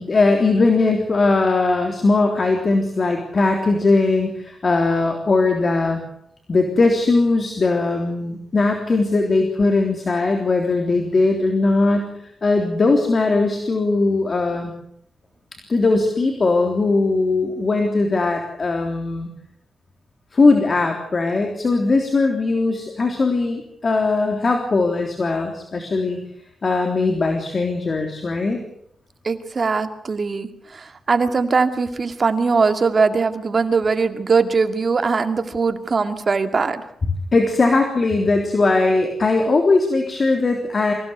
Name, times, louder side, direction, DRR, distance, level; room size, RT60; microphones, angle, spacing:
voice 1, 0.0-6.0 6.5-12.1 12.4-14.7 15.7-19.3 20.3-26.2 26.6-28.6 37.3-40.9, left 3 dB, 40° left, 3 dB, 3.5 m, -19 dB
voice 2, 29.2-36.8, right 4 dB, 45° right, 8 dB, 2.2 m, -21 dB
25.0 x 16.5 x 8.2 m, 0.71 s
cardioid pair, 95°, 0 cm